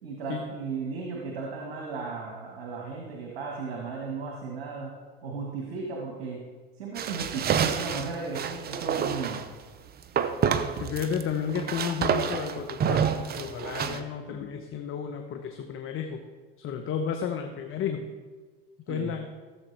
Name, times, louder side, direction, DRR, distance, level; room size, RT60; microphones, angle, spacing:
voice 1, 0.0-4.9 5.2-6.4 6.7-9.4 13.8-14.0 18.9-19.1, right 4 dB, 80° right, -1 dB, 1.6 m, -35 dB
sound 1, 6.9-9.5 10.2-11.2 11.5-14.0, right 7 dB, 30° right, 0.7 m, -28 dB
voice 2, 10.8-13.1 13.4-16.2 16.6-18.1 18.9-19.3, left 7 dB, 45° left, 5 dB, 0.9 m, -32 dB
14.5 x 7.2 x 3.3 m, 1.4 s
hypercardioid pair, 85°, 30 cm